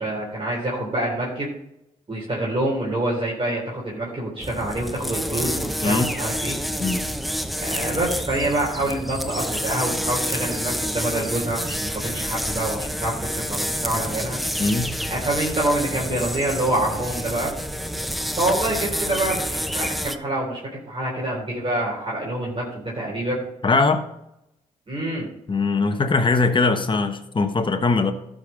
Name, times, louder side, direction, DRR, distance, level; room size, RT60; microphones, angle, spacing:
voice 1, 0.0-1.5 2.1-6.6 7.6-14.4 15.1-17.5 18.4-20.6 20.9-23.4 24.9-25.3, right 1 dB, 35° right, -4 dB, 3.6 m, -26 dB
sound 1, 4.4-20.2, equal, ahead, 0.9 m, -28 dB
voice 2, 14.6-14.9 23.6-24.1 25.5-28.1, left 3 dB, 30° left, 6 dB, 1.2 m, -21 dB
12.0 x 5.3 x 5.3 m, 0.83 s
supercardioid pair, 60°, 15 cm